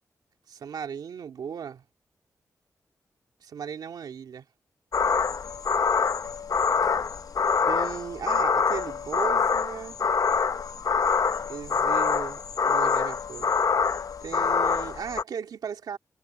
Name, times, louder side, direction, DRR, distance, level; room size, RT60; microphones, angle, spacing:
voice 1, 0.5-1.8 3.4-4.5 7.7-10.0 11.5-13.5 14.2-16.0, right 7 dB, 90° right, 2.5 m, -36 dB
sound 1, 4.9-15.2, left 5 dB, 60° left, 1.0 m, -25 dB
cardioid pair, 55°, 7 cm